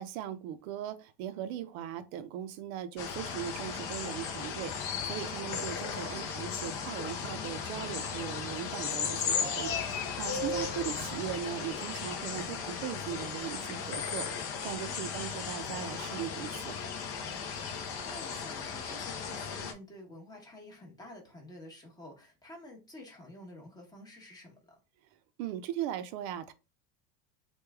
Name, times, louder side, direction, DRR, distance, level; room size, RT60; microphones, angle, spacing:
voice 1, 0.0-16.8 25.4-26.5, right 10 dB, 60° right, 0.6 m, -39 dB
sound 1, 3.0-19.7, left 6 dB, 30° left, 0.5 m, -36 dB
voice 2, 5.3-5.7 14.9-15.1 17.6-24.8, left 1 dB, 10° left, 1.0 m, -50 dB
3.1 x 2.3 x 3.4 m
supercardioid pair, 140°, 46 cm